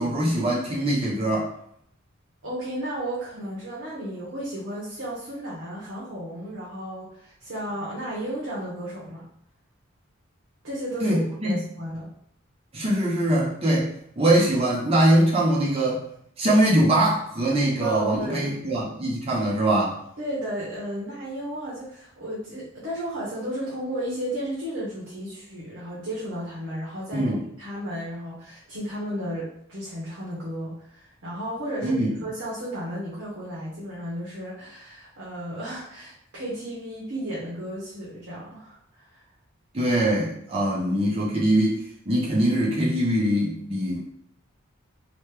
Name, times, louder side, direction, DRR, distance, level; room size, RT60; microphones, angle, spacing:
voice 1, 0.0-1.5 11.0-11.5 12.7-13.9 14.2-16.0 16.4-20.0 27.1-27.4 31.8-32.1 39.7-44.0, right 1 dB, 30° right, -5 dB, 0.6 m, -22 dB
voice 2, 2.4-9.2 10.6-12.1 17.8-18.5 20.2-27.3 27.6-39.2, equal, 65° right, -7 dB, 0.8 m, -34 dB
3.0 x 2.1 x 3.2 m, 0.69 s
head